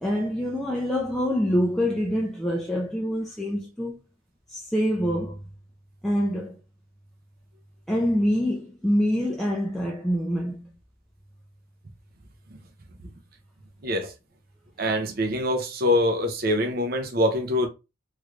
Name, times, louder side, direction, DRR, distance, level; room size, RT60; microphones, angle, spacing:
voice 1, 0.0-4.0 4.5-5.4 6.0-6.6 7.9-10.7, equal, ahead, 0.4 m, -25 dB
voice 2, 13.8-14.1 14.8-17.7, left 1 dB, 50° right, 0.6 m, -24 dB
3.1 x 3.1 x 2.3 m
head